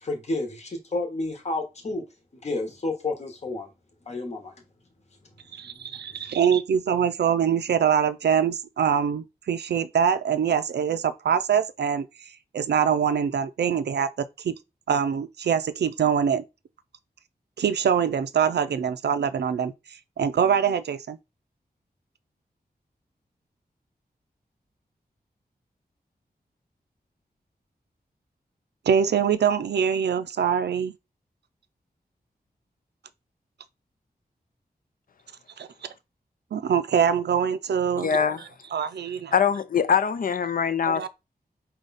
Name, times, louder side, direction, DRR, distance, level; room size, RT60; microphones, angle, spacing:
voice 1, 0.0-2.0 2.3-3.7 4.1-4.5, left 2 dB, 40° left, 1.1 m, -30 dB
voice 2, 5.5-12.1 12.5-14.5 14.9-16.4 17.6-21.2 28.9-30.9 35.6-35.7 36.5-38.1 38.7-39.3 40.9-41.1, right 7 dB, 85° right, 0.4 m, -24 dB
voice 3, 38.0-38.4 39.3-41.1, left 7 dB, 60° left, 0.5 m, -23 dB
5.0 x 2.3 x 4.0 m
wide cardioid pair, 115°, 17 cm